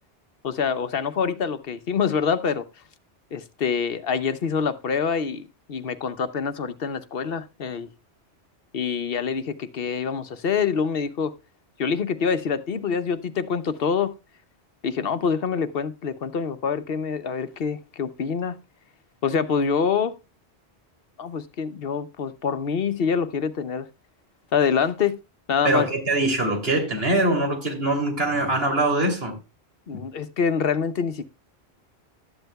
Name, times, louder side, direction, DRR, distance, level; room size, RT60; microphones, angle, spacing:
voice 1, 0.4-2.6 3.3-7.9 8.7-11.3 11.8-14.1 14.8-18.6 19.2-20.1 21.2-23.9 24.5-25.2 25.5-25.8 29.9-31.2, left 6 dB, 60° left, 1.0 m, -25 dB
voice 2, 25.7-29.3 29.9-30.0, right 2 dB, 65° right, 3.4 m, -23 dB
13.0 x 10.5 x 2.3 m
omnidirectional pair, 1.1 m